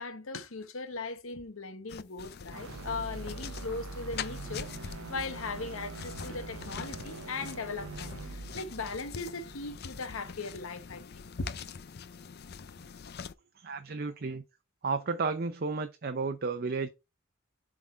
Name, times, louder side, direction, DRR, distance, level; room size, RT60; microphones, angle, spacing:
voice 1, 0.0-11.5, left 3 dB, 80° left, 1.1 m, -39 dB
sound 1, 1.9-13.3, left 6 dB, 50° left, 0.5 m, -44 dB
sound 2, 2.5-10.7, right 3 dB, 90° right, 0.6 m, -44 dB
voice 2, 13.6-14.4 14.8-16.9, right 4 dB, 50° right, 0.6 m, -32 dB
7.5 x 3.8 x 4.3 m
head